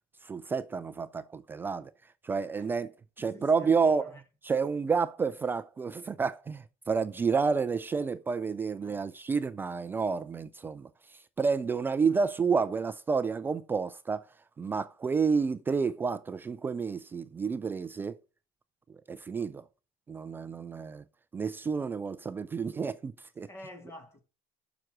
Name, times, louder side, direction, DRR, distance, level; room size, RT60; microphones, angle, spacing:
voice 1, 0.2-1.9 2.2-2.9 3.2-4.1 4.4-10.9 11.4-14.2 14.6-18.2 19.1-19.6 20.1-21.0 21.3-23.5, right 5 dB, 15° right, 0.4 m, -30 dB
voice 2, 3.2-4.2 8.8-9.0 12.1-12.2 23.4-24.2, left 1 dB, 15° left, 1.3 m, -49 dB
7.6 x 6.0 x 6.0 m
cardioid pair, 170°, 15 cm